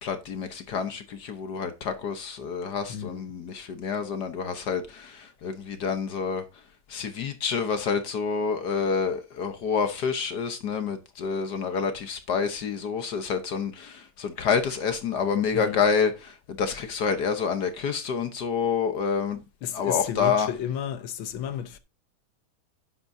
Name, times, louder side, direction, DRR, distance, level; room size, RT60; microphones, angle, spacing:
voice 1, 0.0-6.4 6.9-19.4 19.7-20.5, left 6 dB, 60° left, 1.5 m, -28 dB
voice 2, 2.9-3.2 15.5-15.8 19.6-21.8, left 9 dB, 80° left, 1.7 m, -32 dB
10.5 x 8.5 x 2.7 m
omnidirectional pair, 2.2 m